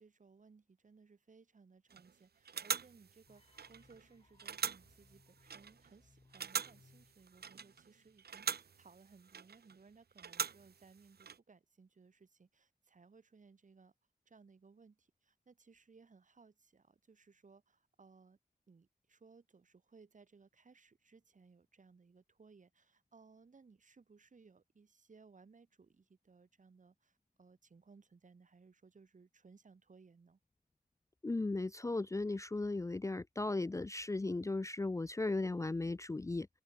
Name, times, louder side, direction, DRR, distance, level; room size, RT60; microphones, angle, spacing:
voice 1, 0.0-13.9 14.3-18.4 18.7-30.4, right 4 dB, 55° right, 3.0 m, -63 dB
sound 1, 1.9-2.1 2.5-4.1 4.4-6.0 6.3-7.9 8.2-9.8 10.2-11.4, right 7 dB, 85° right, 1.4 m, -43 dB
sound 2, 3.3-8.4, left 3 dB, 35° left, 5.0 m, -69 dB
voice 2, 31.2-36.5, left 2 dB, 20° left, 0.5 m, -36 dB
open air
wide cardioid pair, 115°, 16 cm